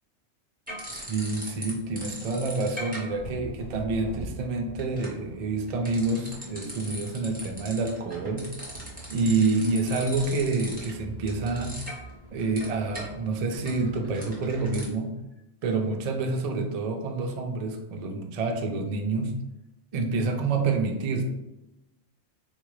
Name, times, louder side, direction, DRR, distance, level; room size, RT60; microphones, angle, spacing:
sound 1, 0.7-1.7 2.0-14.8, right 1 dB, 10° right, 0.8 m, -40 dB
voice 1, 0.9-8.5 9.1-11.8 12.3-15.1 15.6-19.4 19.9-21.2, right 3 dB, 65° right, 3 dB, 0.4 m, -28 dB
3.6 x 2.4 x 3.1 m, 0.94 s
omnidirectional pair, 1.2 m